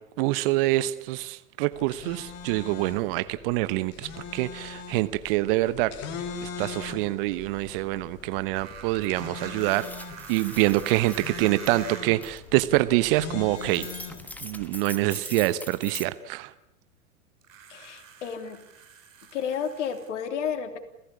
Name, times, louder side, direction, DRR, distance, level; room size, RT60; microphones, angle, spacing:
voice 1, 0.2-5.9 6.4-9.9 10.3-13.9 14.4-16.5, right 18 dB, 40° right, 15 dB, 1.1 m, -26 dB
sound 1, 1.7-14.7, left 5 dB, 35° left, 3.2 m, -41 dB
sound 2, 8.5-12.3 13.3-13.4 17.4-20.1, right 6 dB, 70° right, 5.2 m, -44 dB
sound 3, 9.0-9.1 9.5-11.9 12.2-12.4 13.6-16.1, left 1 dB, 5° left, 1.6 m, -42 dB
voice 2, 17.7-18.6 19.3-20.8, left 7 dB, 60° left, 7 dB, 3.3 m, -31 dB
29.0 x 16.0 x 8.6 m, 0.88 s
figure-of-eight pair, 90°, 41 cm